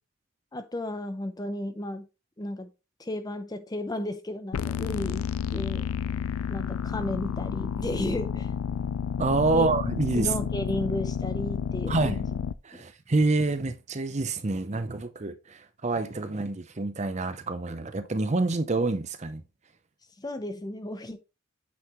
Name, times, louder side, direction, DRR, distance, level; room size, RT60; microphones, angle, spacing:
voice 1, 0.5-2.1 2.4-2.7 3.0-5.2 5.5-5.9 6.5-8.5 9.5-9.7 10.2-12.3 12.7-12.8 20.2-21.2, left 1 dB, 15° left, 0.5 m, -33 dB
sound 1, 4.5-12.5, left 7 dB, 75° left, 0.4 m, -31 dB
voice 2, 9.2-10.3 11.9-12.2 12.6-19.4, right 3 dB, 30° right, 0.6 m, -27 dB
8.5 x 5.6 x 3.0 m
head